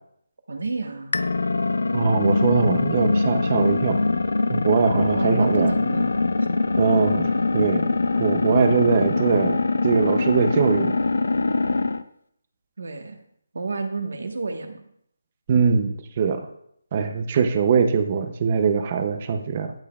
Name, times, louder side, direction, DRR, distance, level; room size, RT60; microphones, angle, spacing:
voice 1, 0.5-1.2 5.0-6.3 12.8-13.2 13.5-14.8, right 3 dB, 70° right, 5 dB, 1.2 m, -30 dB
sound 1, 1.1-12.0, left 3 dB, 80° left, 0.5 m, -23 dB
voice 2, 1.9-4.0 4.5-5.7 6.8-7.9 8.2-11.0 15.5-16.5 16.9-19.7, right 6 dB, 25° right, 8 dB, 0.5 m, -22 dB
12.0 x 7.3 x 2.3 m, 0.70 s
hypercardioid pair, 175°, 0 cm